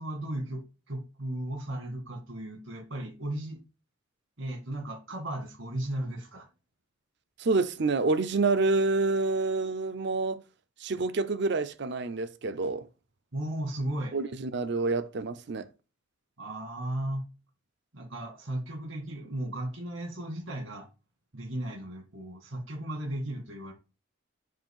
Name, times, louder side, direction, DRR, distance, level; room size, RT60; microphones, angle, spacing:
voice 1, 0.0-3.6 4.4-6.5 13.3-14.2 16.4-17.3 17.9-20.9 21.3-23.7, right 1 dB, 80° right, 1.9 m, -35 dB
voice 2, 7.4-10.4 10.8-12.9 14.1-15.7, right 3 dB, 60° right, 0.6 m, -28 dB
7.6 x 2.6 x 5.5 m
head